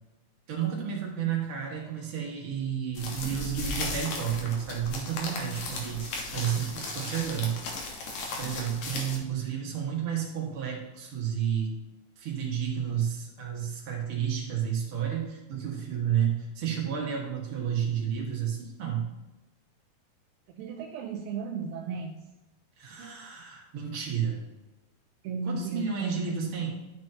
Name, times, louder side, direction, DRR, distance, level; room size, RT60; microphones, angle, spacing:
voice 1, 0.5-8.0 8.4-11.8 12.2-19.1 22.8-24.4 25.5-26.7, right 8 dB, 50° right, -2 dB, 2.1 m, -31 dB
sound 1, 3.0-9.2, left 2 dB, 65° left, 2.4 m, -36 dB
voice 2, 20.5-22.2 25.2-26.2, right 4 dB, 80° right, 4 dB, 1.7 m, -35 dB
11.0 x 6.2 x 2.8 m, 1.0 s
omnidirectional pair, 3.8 m